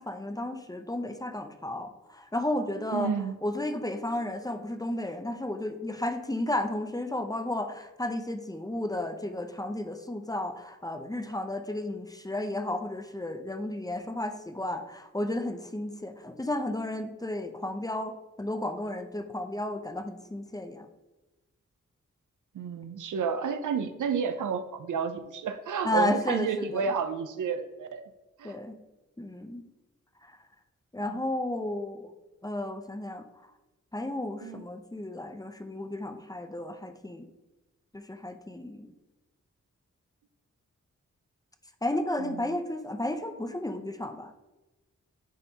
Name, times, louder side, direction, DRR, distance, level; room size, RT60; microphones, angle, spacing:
voice 1, 0.0-3.1 3.4-20.9 25.8-26.8 28.4-28.8 29.2-29.7 30.9-32.1 32.4-33.3 33.9-37.2 37.9-38.9 41.8-44.3, left 1 dB, 10° left, 7 dB, 0.6 m, -33 dB
voice 2, 2.9-3.4 22.5-28.0 28.4-28.6 31.1-31.2 34.4-34.7 42.2-42.6, right 6 dB, 80° right, 10 dB, 0.5 m, -31 dB
10.0 x 3.4 x 2.8 m, 1.1 s
cardioid pair, 55°, 30 cm